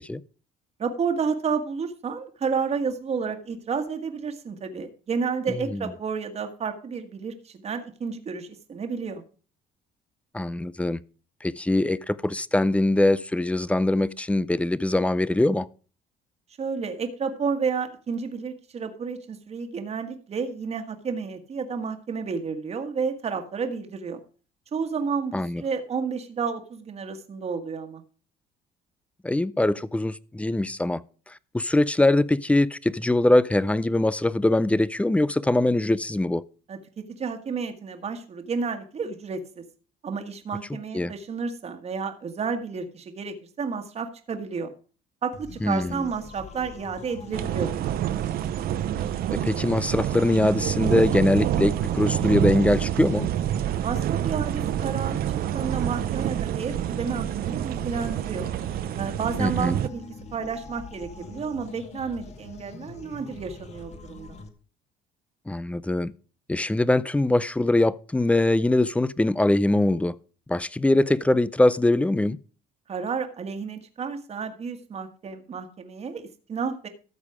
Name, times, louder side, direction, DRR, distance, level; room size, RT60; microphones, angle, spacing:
voice 1, 0.8-9.2 16.6-24.2 24.7-28.0 36.7-39.6 40.0-44.7 45.2-47.9 53.8-58.5 59.0-64.4 72.9-76.9, right 5 dB, 40° right, 1.6 m, -31 dB
voice 2, 10.3-11.0 11.4-15.7 25.3-25.6 29.2-31.0 31.3-36.4 40.9-41.1 45.6-46.0 49.3-53.3 59.4-59.8 65.5-66.1 66.5-70.1 70.5-72.4, left 2 dB, 5° left, 0.5 m, -22 dB
sound 1, 45.3-64.5, left 3 dB, 40° left, 2.2 m, -44 dB
sound 2, 47.3-59.9, right 12 dB, 65° right, 0.6 m, -27 dB
13.5 x 7.3 x 4.9 m
cardioid pair, 110°, 17 cm